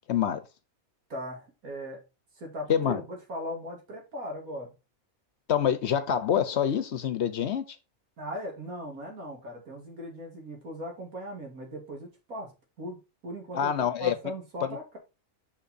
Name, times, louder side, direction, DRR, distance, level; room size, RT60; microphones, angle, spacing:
voice 1, 0.1-0.4 2.7-3.0 5.5-7.6 13.5-14.1, left 9 dB, 60° left, 0.9 m, -26 dB
voice 2, 1.1-2.0 2.4-4.7 8.2-12.5 12.8-13.7 14.0-15.0, equal, 85° right, 2.7 m, -38 dB
5.8 x 5.4 x 4.1 m
omnidirectional pair, 1.5 m